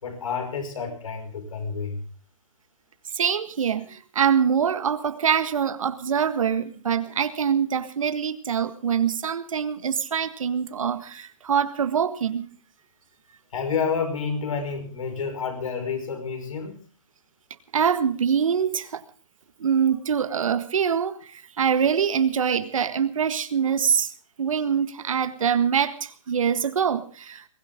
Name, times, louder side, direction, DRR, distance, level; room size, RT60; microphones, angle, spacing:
voice 1, 0.0-2.0 13.5-16.8, left 5 dB, 85° left, 5.4 m, -29 dB
voice 2, 3.1-12.5 17.7-19.0 19.6-24.1 24.4-27.4, right 7 dB, 85° right, 1.7 m, -24 dB
22.0 x 15.5 x 3.7 m
hypercardioid pair, 165°, 17 cm